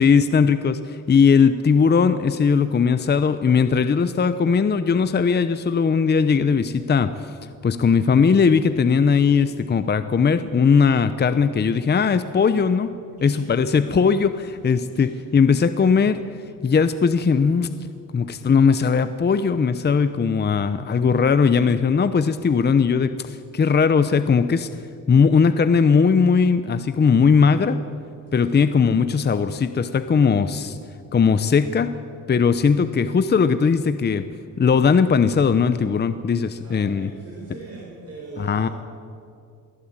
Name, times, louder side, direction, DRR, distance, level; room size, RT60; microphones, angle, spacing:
voice 1, 0.0-7.3 7.6-12.9 13.2-14.3 14.6-16.2 16.6-17.7 18.1-24.7 25.1-27.8 28.3-30.7 31.1-32.0 32.3-34.3 34.6-37.1 38.4-38.7, left 5 dB, 30° left, 11 dB, 0.8 m, -19 dB
voice 2, 13.2-13.6 14.0-14.1 14.9-15.1 28.3-28.8 30.1-30.5 36.6-38.7, right 3 dB, 45° right, -3 dB, 5.3 m, -41 dB
23.0 x 15.5 x 8.8 m, 2.4 s
cardioid pair, 125°, 35 cm